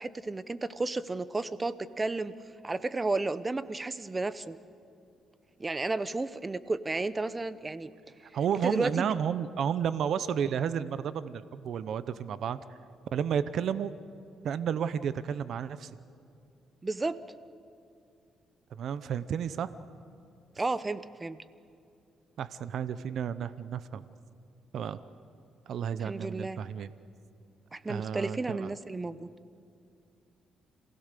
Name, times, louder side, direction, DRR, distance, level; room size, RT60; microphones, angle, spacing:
voice 1, 0.0-2.4 2.6-4.6 5.6-7.9 8.6-9.1 16.8-17.2 20.6-21.4 26.0-26.6 27.7-29.3, right 3 dB, 20° right, 15 dB, 0.7 m, -32 dB
voice 2, 8.3-12.6 13.1-14.0 14.4-15.9 18.7-19.7 22.4-24.0 24.7-25.0 25.7-26.9 27.9-28.7, right 8 dB, 65° right, 14 dB, 0.7 m, -32 dB
27.0 x 16.5 x 6.7 m, 2.5 s
cardioid pair, 90°, 0 cm